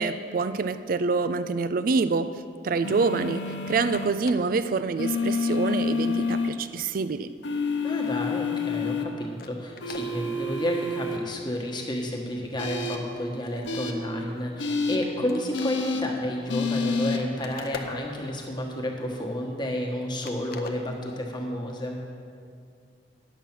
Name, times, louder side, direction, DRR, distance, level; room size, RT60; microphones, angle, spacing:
voice 1, 0.0-7.3, right 4 dB, 50° right, 12 dB, 0.4 m, -26 dB
sound 1, 2.8-4.1 5.0-6.5 7.4-9.0 9.8-11.2 12.6-13.0 13.7-13.9 14.6-15.0 15.5-16.0 16.5-17.2, left 4 dB, 75° left, 0.9 m, -28 dB
sound 2, 3.9-4.6 5.3-5.4 5.8-8.2 8.5-8.7 9.1-9.2 9.4-10.1 10.7-10.8 11.2-11.4 11.8-12.2 12.4-14.7 15.0-15.1 15.3-18.5 18.9-19.9 20.2-21.3, left 4 dB, 55° left, 0.7 m, -45 dB
voice 2, 7.8-22.0, equal, 25° left, 0 dB, 1.3 m, -31 dB
10.0 x 7.0 x 6.0 m, 2.4 s
head